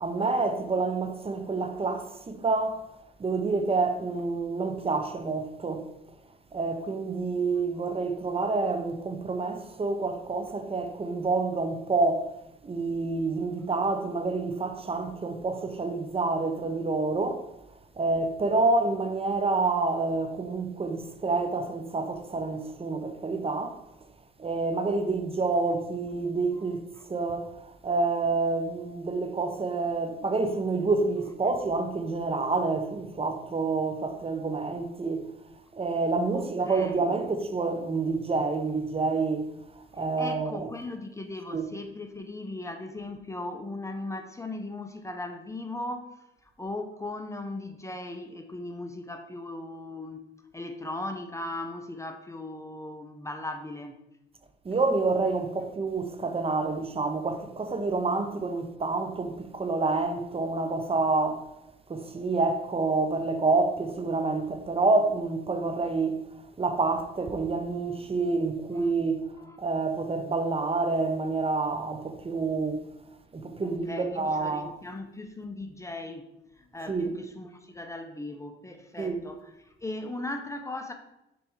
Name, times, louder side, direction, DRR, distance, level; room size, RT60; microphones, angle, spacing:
voice 1, 0.0-2.8 3.2-5.9 6.5-12.3 12.6-17.5 18.0-23.8 24.4-26.8 27.1-35.2 35.7-39.5 39.8-40.7 41.5-41.7 54.6-61.5 61.9-66.2 66.6-69.2 69.6-72.9 73.3-74.8 76.9-77.1 79.0-79.2, right 3 dB, 30° right, 0.7 m, -28 dB
voice 2, 36.3-37.1 40.2-46.1 46.4-50.3 50.5-54.0 56.5-56.6 68.8-68.9 69.4-69.6 73.6-76.3 76.6-80.9, left 2 dB, 15° left, 0.7 m, -38 dB
6.9 x 3.4 x 4.7 m
cardioid pair, 90°, 20 cm